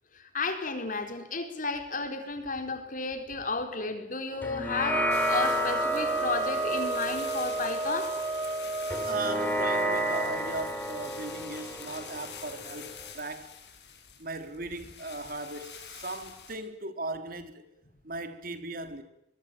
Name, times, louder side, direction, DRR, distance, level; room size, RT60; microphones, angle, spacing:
voice 1, 0.3-8.1, left 3 dB, 50° left, 4.4 m, -33 dB
sound 1, 4.4-13.1, left 1 dB, 10° left, 3.1 m, -33 dB
sound 2, 4.9-10.3, right 3 dB, 25° right, 1.3 m, -31 dB
sound 3, 5.1-16.6, left 7 dB, 70° left, 7.3 m, -46 dB
voice 2, 9.0-13.5 14.2-17.6 18.0-19.0, right 2 dB, 55° right, 3.6 m, -38 dB
24.0 x 24.0 x 9.1 m
head